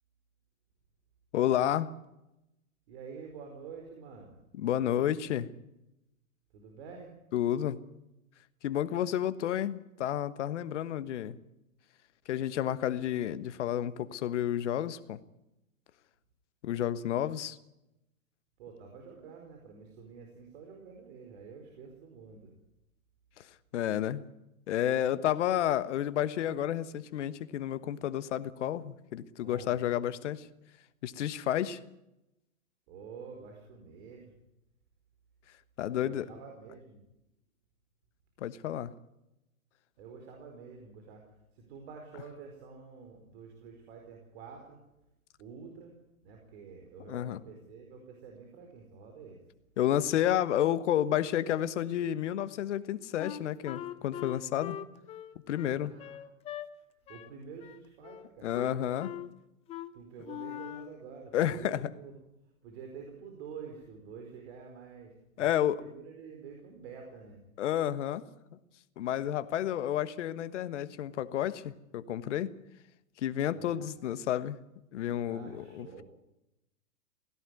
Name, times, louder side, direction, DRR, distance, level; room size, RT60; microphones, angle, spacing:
voice 1, 1.3-1.9 4.6-5.5 7.3-7.8 8.6-11.4 12.3-15.2 16.6-17.6 23.4-23.5 23.7-24.2 24.7-30.5 31.0-31.8 35.8-36.3 38.4-38.9 47.1-47.4 49.8-54.8 55.5-55.9 58.4-59.1 61.3-61.9 65.4-65.8 67.6-68.2 69.0-72.5 73.2-74.6 74.9-76.0, left 11 dB, 55° left, 14 dB, 1.4 m, -31 dB
voice 2, 2.9-4.4 6.5-7.1 18.6-22.5 29.4-29.8 32.9-34.3 35.8-37.0 40.0-41.3 41.5-44.8 45.4-45.9 46.2-49.4 55.6-56.2 57.1-59.0 59.9-62.1 62.6-67.4 73.6-73.9 75.2-76.0, right 5 dB, 45° right, 2 dB, 4.6 m, -48 dB
Wind instrument woodwind instrument, 53.2-56.7 57.1-57.3 57.6-58.3 58.5-59.3 59.7-59.9 60.2-61.0, left 11 dB, 15° left, 0.6 m, -42 dB
17.0 x 16.0 x 9.6 m, 0.90 s
hypercardioid pair, 130°, 42 cm